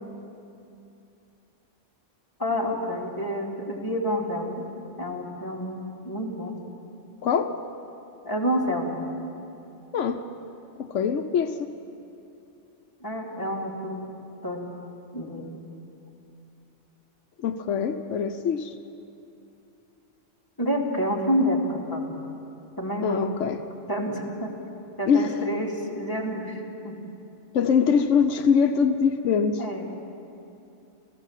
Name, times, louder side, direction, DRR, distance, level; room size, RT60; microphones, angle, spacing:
voice 1, 2.4-4.7 5.0-6.5 8.2-9.0 13.0-14.1 14.4-14.7 15.1-15.6 20.6-22.1 22.8-23.2 23.9-24.5 25.0-27.0 29.6-29.8, equal, 15° left, -2 dB, 2.7 m, -28 dB
voice 2, 7.2-7.5 9.9-10.2 10.8-11.7 17.4-18.7 23.0-23.7 25.1-25.4 27.5-29.6, left 6 dB, 80° left, 7 dB, 1.1 m, -23 dB
29.5 x 15.0 x 7.4 m, 2.8 s
omnidirectional pair, 1.3 m